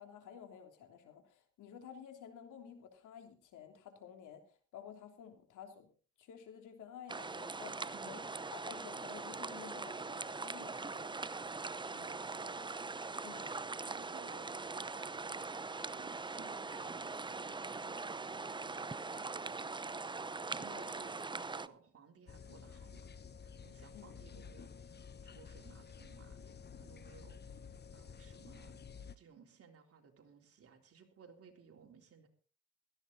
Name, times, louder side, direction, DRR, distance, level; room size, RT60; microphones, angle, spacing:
voice 1, 0.0-5.9 6.2-8.2 8.5-11.2 13.2-13.7 20.7-20.9 23.9-24.5, left 8 dB, 80° left, 6 dB, 3.2 m, -52 dB
sound 1, 7.1-21.7, right 3 dB, 15° right, 0.6 m, -42 dB
voice 2, 7.9-8.3 11.9-12.6 13.9-15.5 15.9-20.0 20.5-23.1 23.4-26.4 26.7-27.4 27.9-28.8 29.2-32.3, right 6 dB, 50° right, 3 dB, 3.8 m, -59 dB
sound 2, 22.3-29.2, left 6 dB, 35° left, 0.9 m, -52 dB
17.0 x 14.0 x 4.1 m, 0.39 s
cardioid pair, 90°, 30 cm